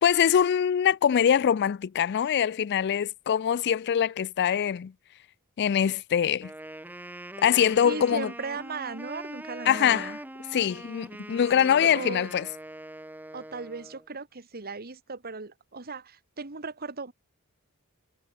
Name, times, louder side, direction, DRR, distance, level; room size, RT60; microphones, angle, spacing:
voice 1, 0.0-4.9 5.6-6.5 7.4-8.3 9.7-10.1 10.5-12.4, left 8 dB, 50° left, 0.4 m, -23 dB
Wind instrument woodwind instrument, 6.3-14.1, right 1 dB, 10° right, 1.1 m, -42 dB
voice 2, 7.8-10.2 11.6-12.3 13.3-17.1, right 4 dB, 45° right, 1.7 m, -37 dB
head